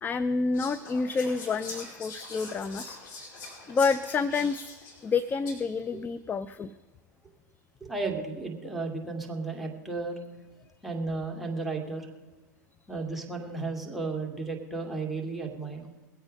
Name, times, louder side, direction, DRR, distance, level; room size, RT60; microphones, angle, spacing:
voice 1, 0.0-3.0 3.7-4.7 5.0-6.7, left 4 dB, 15° left, 15 dB, 0.4 m, -28 dB
Whispering, 0.5-5.8, left 2 dB, 45° left, 4.8 m, -43 dB
voice 2, 7.8-10.2 10.8-12.1 12.9-15.9, right 3 dB, ahead, 0 dB, 2.3 m, -34 dB
21.5 x 8.0 x 5.3 m, 1.3 s
hypercardioid pair, 105°, 10 cm